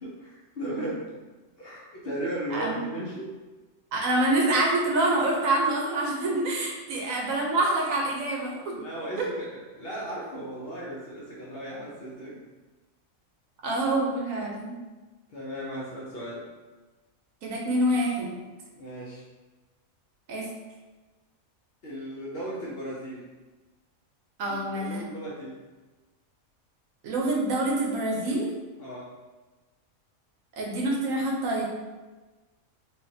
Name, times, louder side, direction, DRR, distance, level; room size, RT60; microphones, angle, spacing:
voice 1, 0.0-1.0 1.6-3.3 6.9-7.1 8.7-12.4 15.3-16.4 18.8-19.2 21.8-23.2 24.4-25.6 28.8-29.1, right 1 dB, 55° left, -6 dB, 0.7 m, -36 dB
voice 2, 3.9-8.6 9.2-9.3 13.6-14.7 17.4-18.4 20.3-20.5 24.4-25.0 27.0-28.5 30.6-31.7, right 2 dB, 70° right, -2 dB, 1.1 m, -26 dB
3.3 x 3.2 x 2.7 m, 1.2 s
omnidirectional pair, 1.5 m